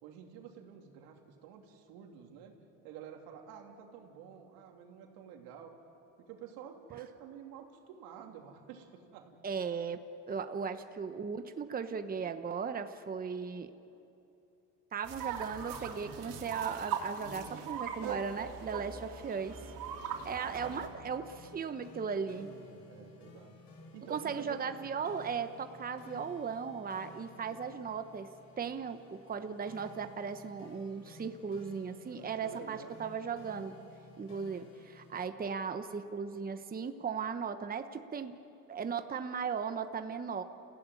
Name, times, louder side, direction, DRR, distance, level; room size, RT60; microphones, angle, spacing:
voice 1, 0.0-2.6 2.8-5.8 6.3-9.4 10.6-10.7 20.3-21.0 22.2-23.5 23.9-24.9 27.3-27.6 32.1-33.0, right 8 dB, 85° right, 2 dB, 3.1 m, -50 dB
voice 2, 9.4-10.0 10.3-13.7 14.9-19.6 20.2-22.5 24.1-28.3 28.6-33.7 34.2-38.4 38.7-40.4, right 6 dB, 25° right, 8 dB, 1.1 m, -37 dB
sound 1, 15.0-20.9, right 7 dB, 65° right, 3.4 m, -40 dB
sound 2, 20.6-35.2, left 2 dB, 60° left, 4.9 m, -55 dB
29.0 x 16.0 x 9.8 m, 2.9 s
supercardioid pair, 100°, 35 cm